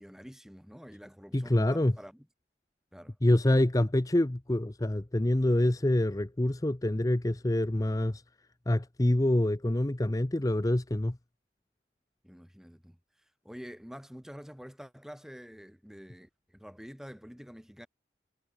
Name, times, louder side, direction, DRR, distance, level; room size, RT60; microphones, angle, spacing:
voice 1, 0.0-2.3 2.9-3.1 12.2-13.0 13.4-17.9, equal, 5° right, 3.1 m, -47 dB
voice 2, 1.3-2.0 3.2-8.2 8.7-11.2, left 1 dB, 20° left, 0.6 m, -26 dB
head